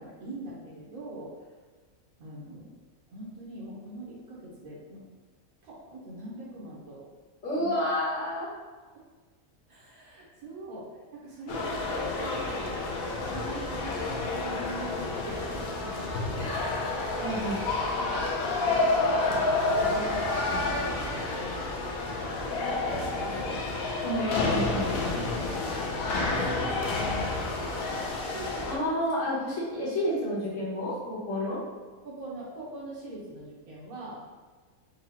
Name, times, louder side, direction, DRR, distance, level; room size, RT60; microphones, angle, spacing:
voice 1, 0.0-1.5 2.2-2.7 3.1-5.0 5.6-7.0 7.6-7.7 9.7-12.7 13.2-16.6 18.6-20.8 21.0-23.6 25.5-28.7 32.0-34.3, right 2 dB, 80° right, -5 dB, 1.5 m, -43 dB
voice 2, 7.4-8.5 17.2-17.6 24.0-24.9 28.7-31.6, equal, 60° left, -7 dB, 1.5 m, -30 dB
sound 1, 11.5-28.8, left 2 dB, 90° left, 1.1 m, -29 dB
4.8 x 2.2 x 2.9 m, 1.4 s
omnidirectional pair, 1.5 m